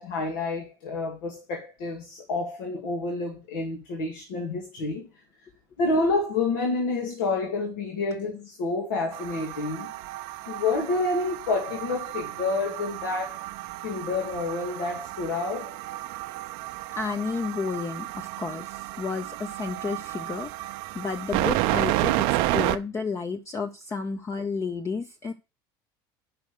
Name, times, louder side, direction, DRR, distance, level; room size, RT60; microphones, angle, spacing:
voice 1, 0.0-5.1 5.8-9.9 10.5-13.5 13.8-15.8, left 3 dB, 85° left, 2.1 m, -29 dB
sound 1, 9.1-22.8, right 16 dB, 70° right, 0.6 m, -31 dB
voice 2, 16.9-20.5 20.9-25.3, left 4 dB, 25° left, 0.8 m, -31 dB
6.0 x 5.3 x 6.6 m
supercardioid pair, 100°, 11 cm